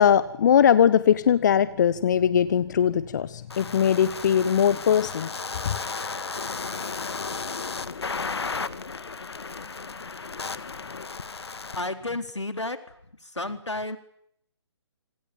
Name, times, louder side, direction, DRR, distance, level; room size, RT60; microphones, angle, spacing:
voice 1, 0.0-5.3 5.6-5.7, left 8 dB, 40° left, 16 dB, 1.2 m, -20 dB
sound 1, 3.5-11.8, left 4 dB, 65° left, 2.0 m, -34 dB
voice 2, 11.8-12.8 13.2-14.0, left 2 dB, 85° left, 9 dB, 4.2 m, -31 dB
27.0 x 27.0 x 7.3 m, 0.70 s
figure-of-eight pair, 140°, 15 cm